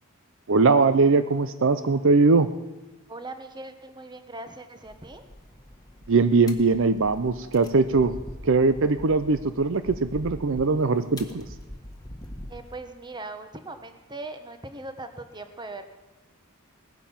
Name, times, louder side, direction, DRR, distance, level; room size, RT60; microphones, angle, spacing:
voice 1, 0.5-2.5 6.1-8.2 8.4-11.5, right 4 dB, 65° right, 12 dB, 0.6 m, -21 dB
voice 2, 3.1-5.2 12.5-15.8, right 2 dB, 20° right, 8 dB, 1.2 m, -40 dB
sound 1, 4.8-12.7, left 1 dB, 20° left, 1.4 m, -43 dB
19.0 x 10.5 x 7.2 m, 1.1 s
head